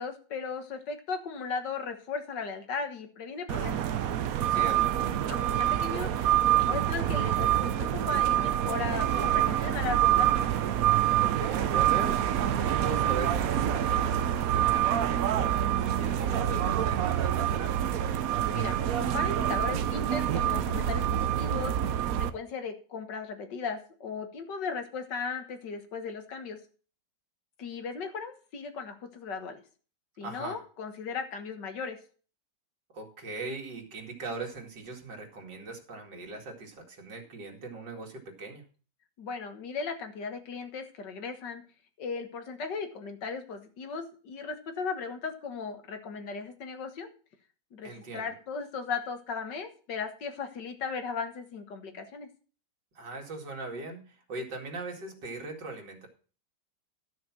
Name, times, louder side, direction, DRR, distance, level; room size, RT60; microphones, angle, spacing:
voice 1, 0.0-3.8 5.3-10.3 18.5-21.7 22.2-26.6 27.6-29.6 30.2-32.0 39.2-41.6 42.0-47.1 47.7-52.3, left 5 dB, 80° left, 7 dB, 2.1 m, -37 dB
sound 1, 3.5-22.3, right 11 dB, 65° right, 1.0 m, -26 dB
voice 2, 4.5-5.0 11.2-17.8 30.2-30.6 32.9-38.6 47.8-48.3 52.9-56.1, right 3 dB, 80° right, 1 dB, 2.9 m, -40 dB
12.0 x 6.6 x 6.0 m, 0.40 s
omnidirectional pair, 1.9 m